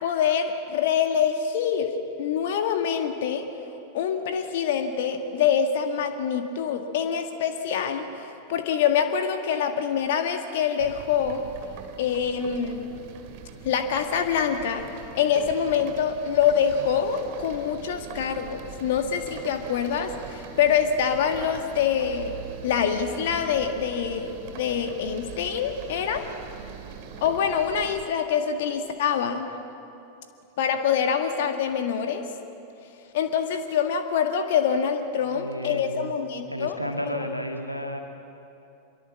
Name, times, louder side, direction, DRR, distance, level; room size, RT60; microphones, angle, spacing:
voice 1, 0.0-1.9 2.2-3.5 3.9-11.4 12.0-12.9 13.6-14.9 15.1-22.3 22.6-26.2 27.2-29.5 30.6-32.2 33.1-36.8 37.1-37.3, left 7 dB, 55° left, 5 dB, 1.8 m, -25 dB
sound 1, 10.8-28.1, right 7 dB, 45° right, 2.2 m, -42 dB
voice 2, 35.2-36.1 36.5-38.0, equal, 90° left, 4 dB, 1.8 m, -32 dB
25.5 x 22.0 x 7.4 m, 2.8 s
figure-of-eight pair, 90°, 0 cm